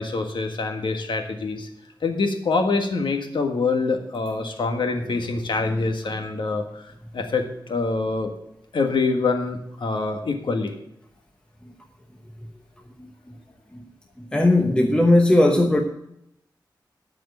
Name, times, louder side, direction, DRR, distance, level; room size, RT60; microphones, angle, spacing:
voice 1, 0.0-1.7 2.0-7.4 7.7-8.3 8.7-10.7, left 3 dB, 90° left, 4 dB, 1.6 m, -25 dB
voice 2, 14.3-15.8, left 1 dB, 10° left, 3 dB, 0.9 m, -17 dB
12.5 x 4.9 x 7.8 m, 0.79 s
wide cardioid pair, 125°, 8 cm